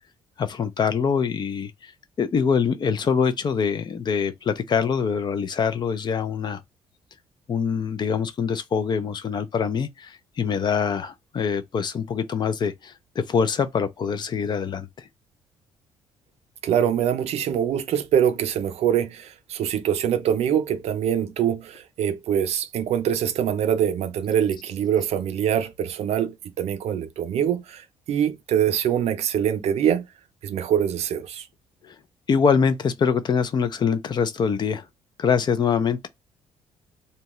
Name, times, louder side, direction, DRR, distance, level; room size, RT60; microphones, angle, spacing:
voice 1, 0.4-1.9 2.2-6.6 7.5-12.9 13.3-14.9 31.8-32.0 32.3-34.8 35.2-36.1, left 6 dB, 40° left, 0.4 m, -24 dB
voice 2, 16.6-30.0 30.4-31.5, right 9 dB, 65° right, 0.5 m, -24 dB
2.7 x 2.2 x 3.0 m
cardioid pair, 105°, 12 cm